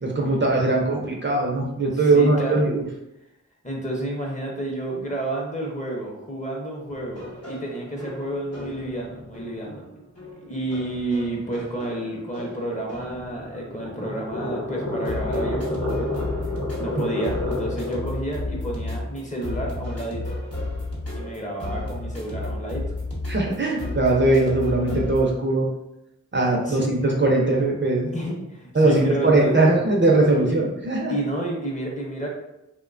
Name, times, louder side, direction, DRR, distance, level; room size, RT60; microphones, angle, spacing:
voice 1, 0.0-2.8 17.0-17.1 23.3-25.7 26.3-28.1 28.7-31.1, right 2 dB, 40° right, -2 dB, 0.5 m, -20 dB
voice 2, 2.0-2.6 3.6-9.9 10.4-16.1 16.8-20.2 21.1-22.8 26.7-26.8 28.1-29.5 31.1-32.3, right 1 dB, 25° left, -2 dB, 0.7 m, -30 dB
sound 1, 6.9-25.2, left 2 dB, 50° left, 0.8 m, -34 dB
sound 2, 13.3-18.2, left 2 dB, 85° left, 0.8 m, -29 dB
2.7 x 2.2 x 2.5 m, 0.88 s
wide cardioid pair, 45°, 31 cm